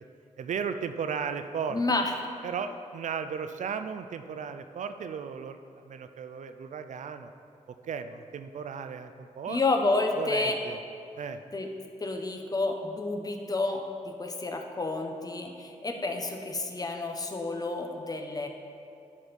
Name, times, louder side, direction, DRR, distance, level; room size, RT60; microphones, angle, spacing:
voice 1, 0.4-1.8 2.4-5.6 5.9-7.3 7.8-9.6 10.2-10.8 11.2-11.4, right 6 dB, 65° right, 9 dB, 0.4 m, -35 dB
voice 2, 1.7-2.1 9.5-10.6 11.5-11.7 12.0-18.5, left 3 dB, 30° left, 4 dB, 0.8 m, -30 dB
11.0 x 4.2 x 5.2 m, 2.5 s
wide cardioid pair, 105°, 13 cm